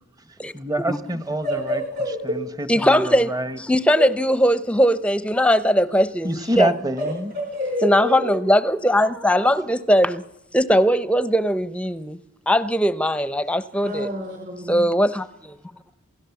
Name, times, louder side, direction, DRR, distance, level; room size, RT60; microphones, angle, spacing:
voice 1, 0.2-1.8 2.2-3.6 6.2-7.3, right 1 dB, 15° right, 1.0 m, -27 dB
voice 2, 1.4-2.4 4.0-4.1 7.0-8.4 13.8-14.9, left 1 dB, 45° right, 4.5 m, -28 dB
voice 3, 2.7-3.3 3.7-6.7 7.8-10.2 10.5-12.2 12.5-14.1 14.7-15.6, equal, 5° left, 0.7 m, -20 dB
27.5 x 17.5 x 7.1 m
head